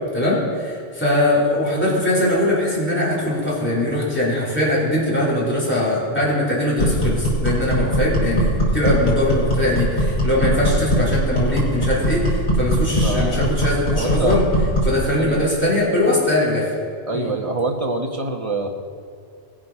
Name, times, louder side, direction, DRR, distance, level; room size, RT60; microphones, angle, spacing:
voice 1, 0.1-14.4 14.8-16.7 17.1-17.3, left 1 dB, 10° left, -8 dB, 3.9 m, -21 dB
sound 1, 6.8-15.0, equal, 70° left, 3.7 m, -20 dB
voice 2, 13.0-13.4 13.9-14.4 15.2-15.5 17.1-18.7, right 2 dB, 30° right, 2 dB, 1.3 m, -25 dB
20.0 x 7.5 x 5.7 m, 2.4 s
omnidirectional pair, 1.1 m